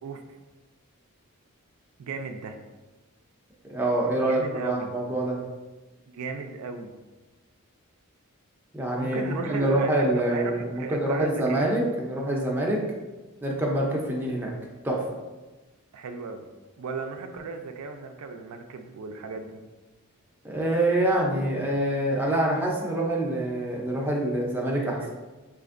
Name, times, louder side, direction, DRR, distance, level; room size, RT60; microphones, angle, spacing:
voice 1, 2.0-2.6 4.2-4.9 6.1-7.0 8.9-11.7 15.9-16.5 16.8-19.6 25.0-25.1, right 4 dB, 85° right, 5 dB, 0.4 m, -35 dB
voice 2, 3.7-5.4 8.7-12.8 13.4-14.5 14.8-15.0 20.4-25.0, right 1 dB, 10° right, -2 dB, 0.5 m, -26 dB
4.9 x 2.5 x 2.5 m, 1.2 s
head